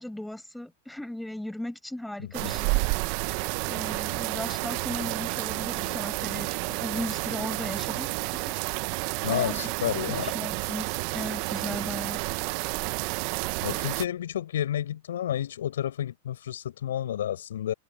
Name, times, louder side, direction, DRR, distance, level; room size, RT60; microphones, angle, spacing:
voice 1, 0.0-2.8 3.7-8.1 8.5-8.6 9.3-9.7 10.1-10.9 11.1-12.2, left 1 dB, 5° left, 7.1 m, -37 dB
voice 2, 2.2-2.5 9.2-10.3 13.6-17.7, left 11 dB, 70° left, 6.6 m, -30 dB
sound 1, 2.3-14.1, right 31 dB, 50° right, 1.1 m, -30 dB
hypercardioid pair, 100°, 0 cm